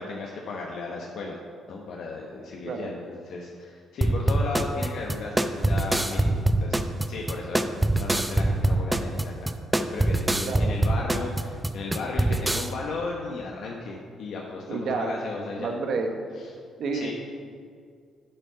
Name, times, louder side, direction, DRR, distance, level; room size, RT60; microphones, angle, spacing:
voice 1, 0.0-1.4 1.7-6.8 7.1-7.6 8.0-15.7 16.9-17.1, left 3 dB, 70° left, -1 dB, 1.0 m, -35 dB
sound 1, 4.0-12.7, right 1 dB, 10° right, 0.5 m, -24 dB
voice 2, 14.7-15.1 15.6-16.1 16.8-17.1, right 4 dB, 65° right, 3 dB, 1.1 m, -29 dB
8.2 x 7.5 x 5.7 m, 2.1 s
cardioid pair, 90°, 0 cm